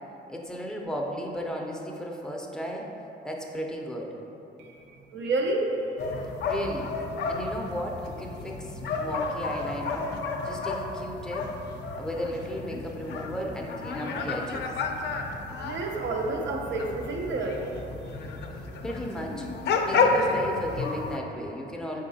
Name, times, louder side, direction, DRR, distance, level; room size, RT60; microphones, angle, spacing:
voice 1, 0.3-2.9 3.2-4.1 6.5-7.0 7.3-10.1 10.4-11.5 12.0-14.7 18.8-19.5 19.8-22.0, equal, 5° left, -1 dB, 0.5 m, -35 dB
voice 2, 4.6-5.9 15.6-17.6, right 2 dB, 70° right, 1 dB, 0.6 m, -30 dB
sound 1, 6.0-21.2, left 3 dB, 60° left, 0.4 m, -31 dB
4.8 x 3.6 x 2.7 m, 2.9 s
cardioid pair, 90°, 20 cm